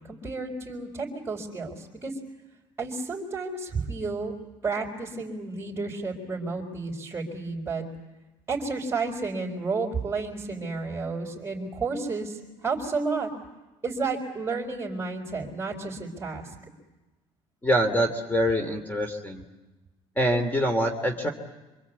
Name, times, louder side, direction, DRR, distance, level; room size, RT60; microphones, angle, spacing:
voice 1, 0.0-2.1 2.8-4.3 4.6-7.8 8.5-13.3 13.8-16.5, right 4 dB, 20° right, -3 dB, 4.6 m, -31 dB
voice 2, 17.6-19.4 20.2-21.3, equal, 15° left, 7 dB, 2.8 m, -25 dB
26.5 x 25.5 x 8.4 m, 1.1 s
cardioid pair, 110°, 12 cm